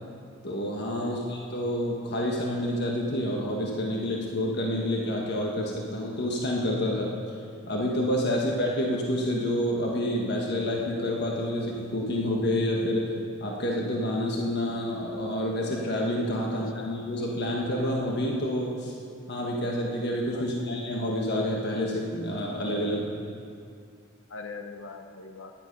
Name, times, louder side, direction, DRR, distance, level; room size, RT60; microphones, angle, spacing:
voice 1, 0.4-7.1 7.6-13.1 13.4-18.9 19.3-23.1, left 1 dB, 55° left, -1 dB, 1.5 m, -28 dB
voice 2, 16.4-16.9 20.3-20.7 24.3-25.5, left 4 dB, 90° left, 6 dB, 1.0 m, -42 dB
15.0 x 10.5 x 5.4 m, 2.3 s
head